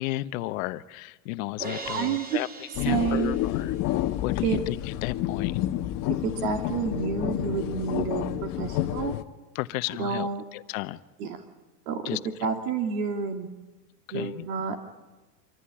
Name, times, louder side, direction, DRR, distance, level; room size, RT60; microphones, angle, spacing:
voice 1, 0.0-2.5 2.8-3.7 4.2-5.6 9.5-11.0 12.0-12.5 14.1-14.5, left 18 dB, 55° left, 13 dB, 1.0 m, -33 dB
Crash cymbal, 1.6-3.9, right 2 dB, 20° right, 2.2 m, -40 dB
voice 2, 1.9-2.4 2.9-3.4 4.4-4.6 6.1-9.1 10.0-10.4 11.2-11.4 11.9-13.5 14.1-14.8, right 6 dB, 65° right, 5 dB, 2.9 m, -29 dB
sound 1, 2.7-9.2, left 14 dB, 40° left, 1.3 m, -29 dB
26.0 x 15.0 x 10.0 m, 1.2 s
supercardioid pair, 135°, 49 cm